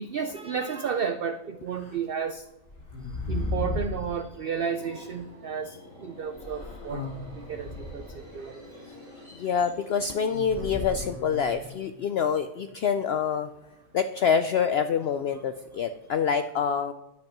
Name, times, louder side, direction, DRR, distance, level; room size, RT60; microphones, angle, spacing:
voice 1, 0.0-2.4 3.3-7.0 7.3-8.6, right 6 dB, 75° right, 10 dB, 0.5 m, -32 dB
sound 1, 1.7-1.9 2.7-4.0 5.2-5.3 6.4-8.2 10.3-11.7, left 2 dB, 35° left, 2.8 m, -35 dB
Subway metro underground, 3.8-11.6, equal, 55° right, 4.9 m, -48 dB
voice 2, 9.4-13.5 13.9-16.9, left 7 dB, 75° left, 10 dB, 0.5 m, -26 dB
10.5 x 7.2 x 6.0 m, 0.97 s
omnidirectional pair, 1.6 m